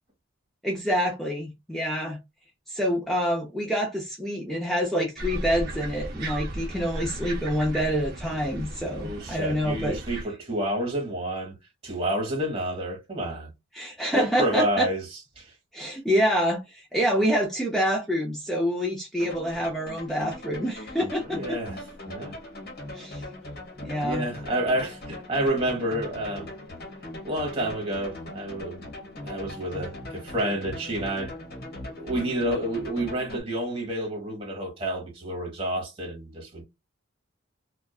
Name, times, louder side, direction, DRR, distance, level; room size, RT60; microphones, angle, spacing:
voice 1, 0.6-2.2 2.7-10.0 13.7-14.9 15.7-21.6 22.9-23.2 23.8-24.3, equal, ahead, 0.4 m, -27 dB
sound 1, 5.2-10.2, right 1 dB, 50° right, 0.6 m, -35 dB
voice 2, 9.0-11.5 11.8-13.5 14.1-15.0 15.4-15.5 21.3-21.8 22.1-22.3 24.0-26.5 27.2-31.3 32.0-36.6, right 1 dB, 30° right, 1.2 m, -29 dB
sound 2, 19.2-33.4, left 1 dB, 50° left, 1.3 m, -40 dB
2.5 x 2.3 x 2.3 m
head